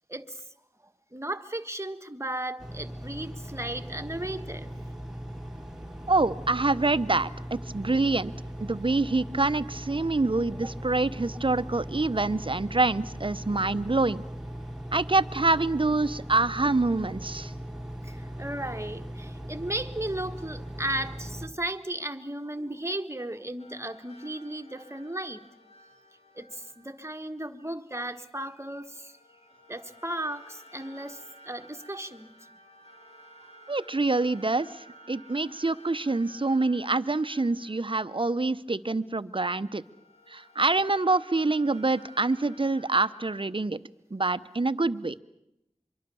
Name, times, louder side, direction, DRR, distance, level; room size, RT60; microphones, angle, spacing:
voice 1, 0.1-0.4 1.1-4.7 18.0-25.5 26.3-29.2 29.7-32.3, right 1 dB, 25° right, 8 dB, 1.6 m, -35 dB
Engine, 2.6-21.5, equal, 5° right, 2.4 m, -39 dB
voice 2, 6.1-8.3 8.6-14.2 14.9-17.5 33.7-34.7 35.1-39.8 40.3-43.8 44.1-45.2, right 3 dB, 50° right, 14 dB, 0.9 m, -26 dB
sound 1, 23.6-27.8 28.7-39.1 39.7-43.5, equal, 60° left, 2.9 m, -54 dB
25.5 x 23.0 x 7.0 m, 0.84 s
wide cardioid pair, 40°, 12 cm